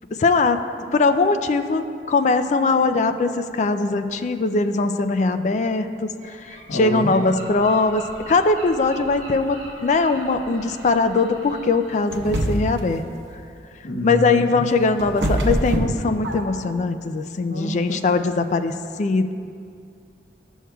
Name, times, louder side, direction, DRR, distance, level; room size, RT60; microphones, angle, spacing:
voice 1, 0.2-0.6 0.9-6.1 6.7-13.0 14.0-19.3, left 3 dB, 40° left, 9 dB, 0.3 m, -21 dB
Gull seagull, 6.2-12.0, right 1 dB, 40° right, 1.4 m, -41 dB
voice 2, 6.7-7.1 13.8-14.6 17.5-17.8, left 1 dB, 80° left, 0 dB, 1.0 m, -26 dB
sound 1, 12.1-12.9 14.4-16.7, right 1 dB, 75° right, 0.8 m, -24 dB
12.0 x 6.3 x 2.3 m, 2.4 s
head